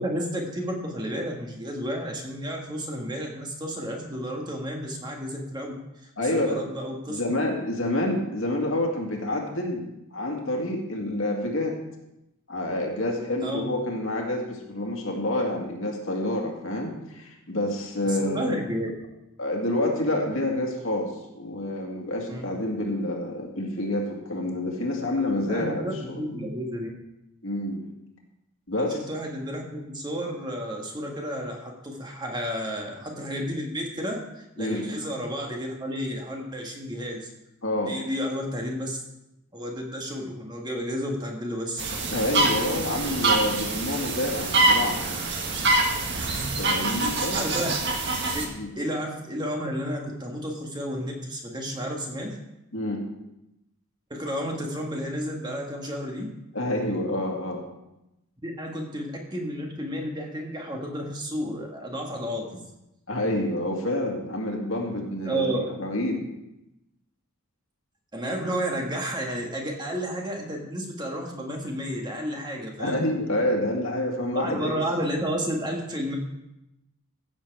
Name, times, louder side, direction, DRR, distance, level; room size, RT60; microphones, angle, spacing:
voice 1, 0.0-7.3 13.4-13.6 18.0-18.9 22.3-22.4 25.4-26.9 28.8-37.3 37.9-39.0 39.5-41.8 45.9-46.0 47.3-47.7 48.3-52.4 54.1-56.3 58.4-62.6 65.2-65.7 68.1-73.0 74.3-76.2, equal, 20° right, 0 dB, 1.5 m, -32 dB
voice 2, 6.2-6.6 7.1-9.8 10.1-11.8 12.5-18.6 19.4-26.4 27.4-27.8 28.7-29.0 34.6-34.8 37.6-37.9 42.1-45.0 46.6-47.4 48.5-48.7 52.7-53.0 56.5-57.6 63.1-66.2 72.8-74.7, left 1 dB, 60° left, 1 dB, 2.2 m, -28 dB
sound 1, 41.8-48.5, right 2 dB, 50° right, 1.7 m, -25 dB
15.0 x 7.5 x 4.7 m, 0.90 s
head